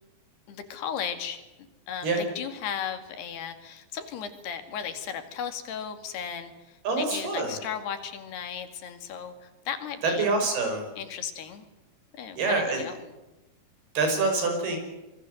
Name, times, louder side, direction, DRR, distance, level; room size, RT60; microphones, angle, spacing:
voice 1, 0.5-1.4 1.9-10.3 11.0-11.7 12.2-12.9, left 8 dB, 85° left, 8 dB, 4.4 m, -36 dB
voice 2, 6.8-7.6 10.0-10.9 12.3-12.9 13.9-14.8, right 3 dB, 75° right, 4 dB, 7.6 m, -26 dB
26.5 x 23.0 x 7.9 m, 1.0 s
omnidirectional pair, 4.6 m